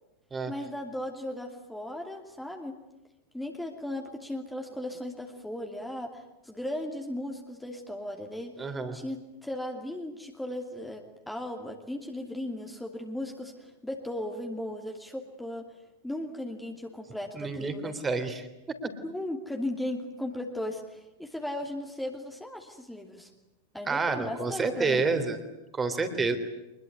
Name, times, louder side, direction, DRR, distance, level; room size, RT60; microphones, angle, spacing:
voice 1, 0.5-2.8 3.3-15.6 16.0-17.9 19.0-23.3 23.7-25.2, left 1 dB, 5° left, 3 dB, 2.7 m, -37 dB
voice 2, 8.6-9.0 17.4-18.5 18.8-18.9 23.9-25.4 25.7-26.4, right 4 dB, 15° right, 9 dB, 3.3 m, -29 dB
24.5 x 21.5 x 9.6 m, 0.95 s
figure-of-eight pair, 90°, 0 cm